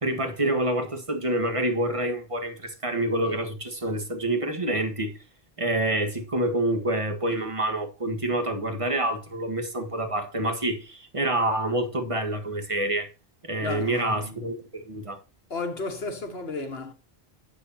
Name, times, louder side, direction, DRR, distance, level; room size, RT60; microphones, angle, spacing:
voice 1, 0.0-5.1 5.6-13.1 13.4-15.2, right 1 dB, 30° right, 1.7 m, -27 dB
voice 2, 13.6-14.5 15.5-16.9, left 3 dB, 80° left, 1.8 m, -33 dB
11.0 x 8.2 x 2.9 m
omnidirectional pair, 1.0 m